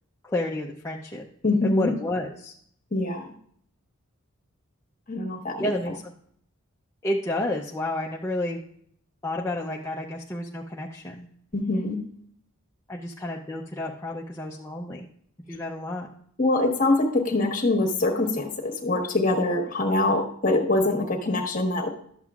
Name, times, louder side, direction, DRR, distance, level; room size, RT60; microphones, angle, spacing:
voice 1, 0.2-1.2 1.6-2.5 5.6-6.1 7.0-8.6 9.2-11.3 12.9-15.1 15.5-16.1, left 1 dB, 15° left, -3 dB, 0.5 m, -30 dB
voice 2, 1.4-1.9 2.9-3.3 5.1-5.7 11.5-12.0 16.4-21.9, left 2 dB, 40° left, 2 dB, 1.3 m, -24 dB
12.0 x 7.5 x 2.4 m, 0.65 s
head